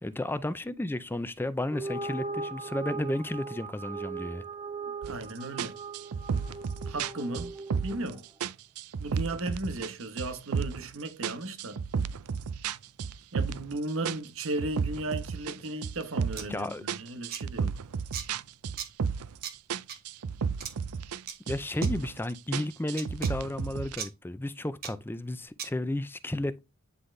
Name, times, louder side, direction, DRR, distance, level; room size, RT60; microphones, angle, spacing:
voice 1, 0.0-4.4 16.5-16.8 21.5-26.6, left 1 dB, 10° left, 0.5 m, -33 dB
sound 1, 1.7-8.2, right 3 dB, 20° right, 1.3 m, -39 dB
voice 2, 5.0-5.8 6.9-7.5 7.8-8.2 9.0-11.8 13.3-17.7, right 2 dB, 65° right, 1.2 m, -35 dB
sound 2, 5.0-5.2 5.6-8.1 8.4-9.9 10.2-10.9 11.2-13.7 14.1-16.5 16.9-19.4 19.7-21.2 21.5-22.2 22.5-24.0, right 6 dB, 90° right, 0.5 m, -32 dB
sound 3, 16.3-16.5 17.3-17.4 18.1-18.3 18.8-18.9 19.4-19.5 19.9-20.0 20.6-20.7 21.3-21.4 21.8-21.9 23.0-23.3 24.0-24.1 24.8-24.9 25.6-25.7, right 8 dB, 45° right, 1.2 m, -37 dB
9.6 x 3.9 x 3.3 m
head